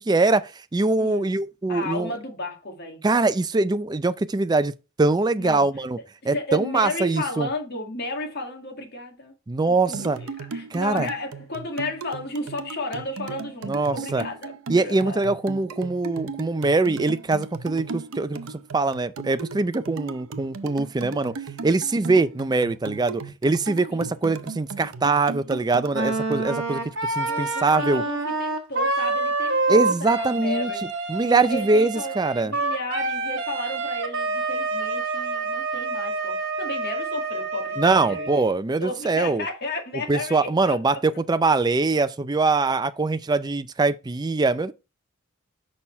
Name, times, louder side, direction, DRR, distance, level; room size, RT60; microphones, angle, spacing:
voice 1, 0.1-2.1 3.0-4.7 5.0-6.0 6.3-7.5 9.5-10.2 10.7-11.1 13.7-14.2 14.7-21.3 21.6-28.0 29.7-30.7 31.1-32.5 37.8-39.4 40.1-44.7, right 3 dB, 20° right, 0.4 m, -23 dB
voice 2, 1.0-1.3 1.7-3.0 5.4-5.7 6.3-9.3 9.7-15.3 23.9-24.1 27.2-30.8 31.2-38.3 38.8-41.0 42.5-42.8, left 2 dB, 50° left, 2.0 m, -33 dB
sound 1, 9.9-26.4, right 4 dB, 75° right, 0.6 m, -37 dB
Wind instrument woodwind instrument, 25.9-38.4, right 3 dB, 60° right, 1.3 m, -27 dB
6.5 x 5.6 x 4.4 m
head